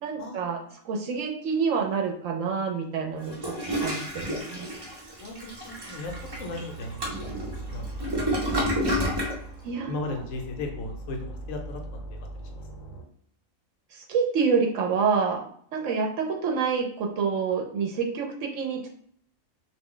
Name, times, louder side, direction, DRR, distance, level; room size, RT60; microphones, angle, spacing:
voice 1, 0.0-3.4 3.8-4.7 9.6-10.1 13.9-18.9, right 5 dB, 70° right, 1 dB, 0.9 m, -27 dB
Toilet flush, 3.2-9.4, equal, 35° right, 0.4 m, -30 dB
voice 2, 5.2-6.1 6.4-7.0 7.4-8.2 8.6-9.2 9.9-11.8, left 2 dB, 70° left, 2 dB, 1.0 m, -36 dB
sound 1, 6.0-13.0, right 2 dB, 45° left, 0.6 m, -39 dB
2.5 x 2.1 x 3.7 m, 0.62 s
omnidirectional pair, 1.5 m